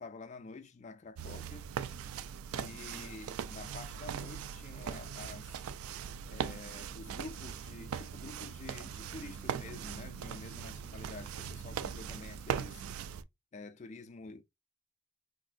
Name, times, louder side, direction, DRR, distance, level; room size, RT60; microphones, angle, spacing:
voice 1, 0.0-1.7 2.5-5.7 6.3-12.9 13.5-14.4, left 3 dB, 35° left, 0.3 m, -48 dB
sound 1, 1.2-13.2, right 8 dB, 85° right, 0.3 m, -40 dB
3.5 x 2.6 x 2.4 m
head